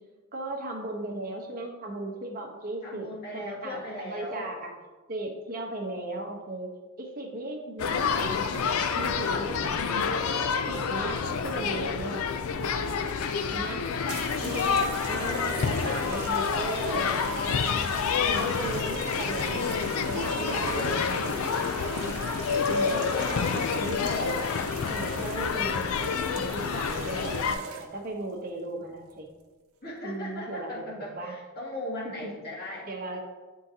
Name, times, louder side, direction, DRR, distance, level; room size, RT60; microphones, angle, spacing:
voice 1, 0.3-3.1 3.3-4.7 5.1-6.7 7.0-8.7 8.9-10.2 10.7-12.3 12.6-12.9 13.5-13.8 14.4-14.8 15.1-22.1 22.7-24.4 24.9-25.9 26.3-29.3 30.0-31.4 32.2-32.4 32.8-33.3, right 1 dB, 45° right, 1 dB, 1.0 m, -37 dB
voice 2, 2.8-4.5 14.4-16.2 29.8-32.9, left 1 dB, 50° left, -5 dB, 1.9 m, -38 dB
sound 1, 7.8-27.6, left 6 dB, 85° left, 0.4 m, -28 dB
sound 2, 14.1-28.1 29.0-29.3, right 5 dB, 85° right, 0.7 m, -41 dB
9.4 x 3.8 x 2.8 m, 1.3 s
head